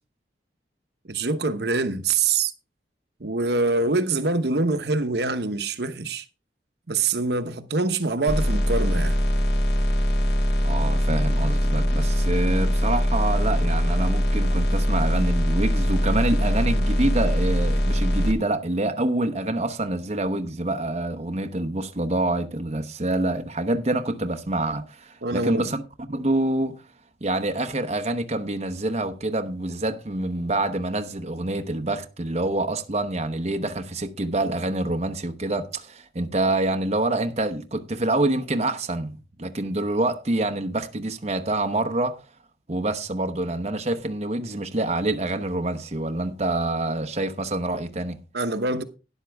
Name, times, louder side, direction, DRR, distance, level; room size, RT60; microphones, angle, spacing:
voice 1, 1.1-2.5 3.2-6.2 6.9-9.2 25.2-25.7 48.3-48.8, right 3 dB, 65° right, 1.0 m, -24 dB
sound 1, 8.3-18.3, equal, 65° left, 2.0 m, -22 dB
voice 2, 10.6-25.8 26.1-26.8 27.2-42.2 42.7-48.2, right 2 dB, 35° right, 0.9 m, -26 dB
12.5 x 10.5 x 3.5 m
head